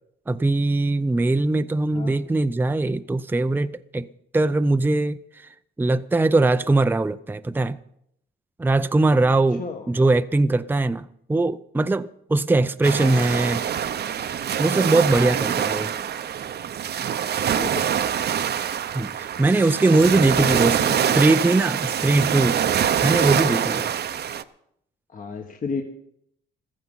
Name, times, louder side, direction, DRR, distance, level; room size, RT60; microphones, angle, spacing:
voice 1, 0.3-4.1 4.3-5.5 5.8-7.8 8.6-13.6 14.6-15.9 18.9-20.8 21.1-22.6 23.0-23.8, right 2 dB, 10° right, 0.5 m, -21 dB
voice 2, 9.5-9.9 12.9-13.5 17.5-18.0 20.1-21.3 23.0-24.0 25.1-25.8, left 4 dB, 40° left, 1.7 m, -33 dB
sound 1, 12.8-24.4, right 9 dB, 55° right, 0.8 m, -24 dB
15.0 x 14.5 x 5.6 m
cardioid pair, 90°, 20 cm